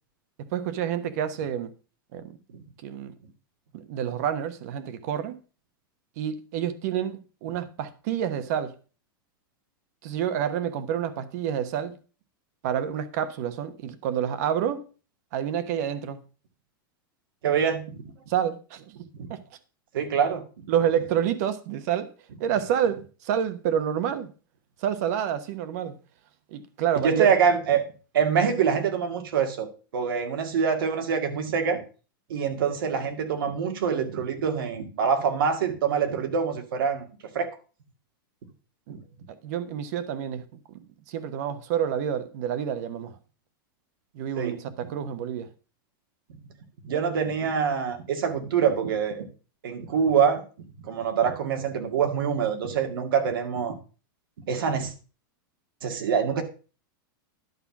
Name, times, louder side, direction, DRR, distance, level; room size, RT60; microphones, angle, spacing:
voice 1, 0.4-1.7 2.1-2.4 2.8-3.1 3.7-5.4 6.2-8.7 10.0-11.9 12.6-14.8 15.3-16.2 18.3-19.0 19.3-19.4 20.7-22.1 22.4-24.3 24.8-26.0 26.5-27.3 38.9-39.0 39.4-40.4 41.1-43.1 44.1-45.5, right 9 dB, 50° right, 1.2 m, -28 dB
voice 2, 17.4-18.1 19.1-19.3 19.9-20.4 26.9-27.8 28.1-31.8 32.3-37.1 37.3-37.5 38.9-39.0 44.4-44.6 46.8-49.2 49.6-50.4 50.8-53.7 54.5-54.9 55.8-56.4, right 7 dB, 80° right, 2.2 m, -25 dB
11.0 x 5.7 x 6.0 m
supercardioid pair, 165°, 12 cm